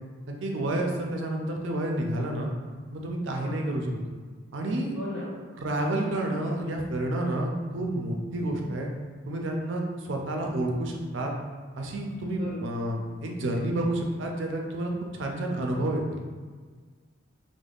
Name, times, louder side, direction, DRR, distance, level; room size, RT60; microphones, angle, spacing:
voice 1, 0.3-2.5 2.9-4.0 4.5-4.9 5.6-8.9 9.3-11.3 11.7-16.2, right 1 dB, 65° right, 1 dB, 0.4 m, -29 dB
voice 2, 3.3-3.6 4.9-5.3 8.3-8.5 12.3-12.8, left 1 dB, 55° left, -10 dB, 1.3 m, -38 dB
3.4 x 2.0 x 2.4 m, 1.5 s
head